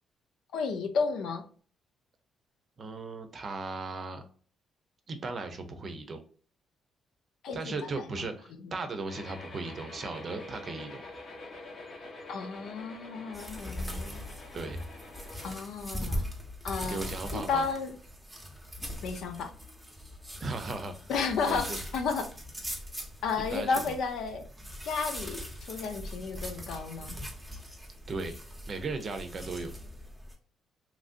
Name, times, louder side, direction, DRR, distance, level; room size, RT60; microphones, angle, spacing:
voice 1, 0.5-1.4 7.4-8.2 8.5-8.7 12.3-14.3 15.4-16.2 16.6-17.0 17.3-17.9 19.0-19.5 21.1-22.3 23.2-24.4 24.9-27.2, left 5 dB, 80° left, 7 dB, 0.5 m, -33 dB
voice 2, 2.8-4.2 5.1-6.2 7.5-11.0 14.1-14.2 14.5-14.8 16.9-17.7 20.4-20.9 21.5-21.8 23.5-24.0 28.1-28.3 28.7-29.7, right 3 dB, 45° right, 7 dB, 0.6 m, -37 dB
sound 1, 9.1-15.5, left 2 dB, 60° left, 0.8 m, -46 dB
sound 2, 13.3-30.3, equal, 5° right, 0.8 m, -40 dB
3.0 x 2.5 x 2.5 m, 0.43 s
cardioid pair, 90°, 0 cm